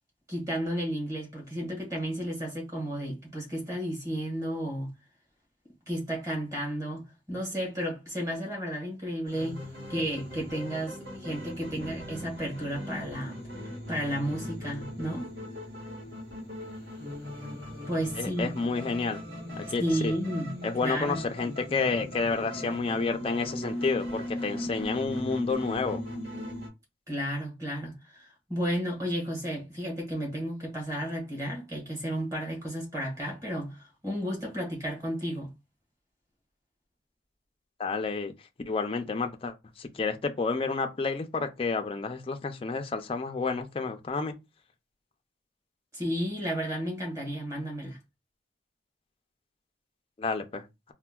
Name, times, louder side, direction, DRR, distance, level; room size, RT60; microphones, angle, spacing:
voice 1, 0.3-4.9 5.9-9.6 9.9-13.4 13.9-15.3 17.9-18.5 19.6-21.3 27.1-35.5 45.9-48.0, equal, 20° right, 1.4 m, -33 dB
sound 1, 9.2-26.7, left 1 dB, 60° right, 1.3 m, -39 dB
voice 2, 18.2-19.2 19.6-20.1 20.6-26.0 37.8-38.3 38.7-44.3 50.2-50.6, left 4 dB, 30° left, 0.4 m, -30 dB
4.3 x 2.1 x 2.3 m
head